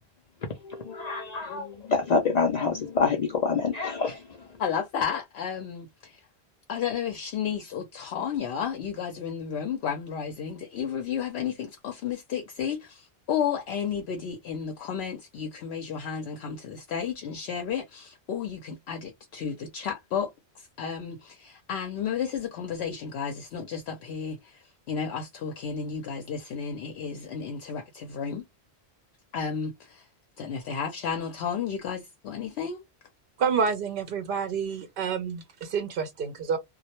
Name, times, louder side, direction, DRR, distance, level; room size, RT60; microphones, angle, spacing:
voice 1, 0.6-4.4, left 5 dB, 55° left, 0.5 m, -27 dB
voice 2, 4.6-6.2 6.7-20.3 20.6-28.4 29.3-30.1 30.4-32.8, left 7 dB, 75° left, 0.8 m, -32 dB
voice 3, 33.4-36.6, right 6 dB, 65° right, 0.7 m, -28 dB
2.2 x 2.0 x 2.8 m
omnidirectional pair, 1.1 m